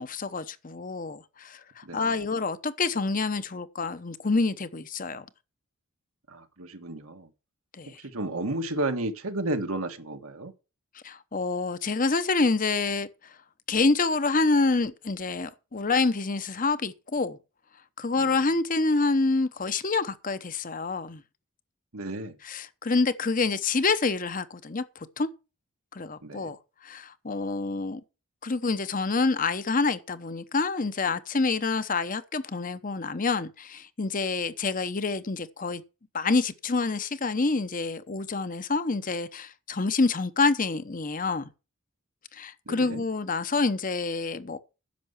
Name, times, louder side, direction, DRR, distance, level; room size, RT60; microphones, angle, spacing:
voice 1, 0.0-5.2 7.8-8.0 11.0-13.1 13.7-17.4 18.0-21.2 22.4-24.8 25.2-25.3 25.9-26.6 26.8-28.0 28.4-35.8 36.1-41.4 42.3-44.6, left 3 dB, 40° left, 0.8 m, -27 dB
voice 2, 1.8-2.1 6.3-7.3 8.0-10.5 18.2-18.4 21.9-22.3 26.2-26.5 42.7-43.0, right 2 dB, 80° right, 1.6 m, -32 dB
10.5 x 6.8 x 7.2 m
head